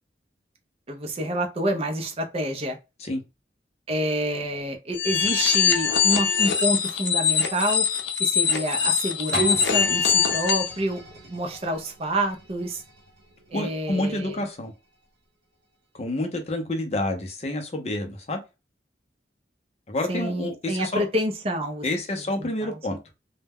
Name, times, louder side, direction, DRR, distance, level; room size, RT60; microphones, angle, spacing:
voice 1, 0.9-2.8 3.9-7.9 8.2-11.0 11.3-12.8 13.5-14.5 20.1-21.8 22.4-22.8, right 1 dB, 35° right, 0.4 m, -28 dB
sound 1, 4.9-10.7, left 7 dB, 80° left, 0.5 m, -22 dB
sound 2, 9.3-15.1 15.6-15.7, right 4 dB, 80° right, 0.6 m, -37 dB
voice 2, 13.5-14.7 15.9-18.4 19.9-21.0 21.8-23.0, left 1 dB, 35° left, 0.5 m, -28 dB
2.1 x 2.1 x 3.4 m
head